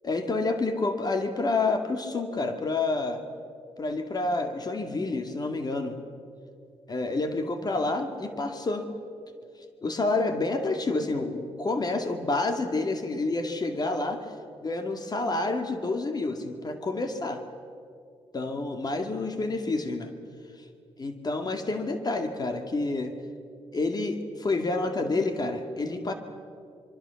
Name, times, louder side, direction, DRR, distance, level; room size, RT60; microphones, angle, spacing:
voice 1, 0.0-3.2 3.8-6.0 6.9-8.9 9.8-14.2 14.6-17.4 18.3-20.1 21.0-23.1 23.7-26.1, left 3 dB, 40° left, 6 dB, 2.2 m, -28 dB
25.0 x 23.5 x 7.1 m, 2.4 s
cardioid pair, 85°, 11 cm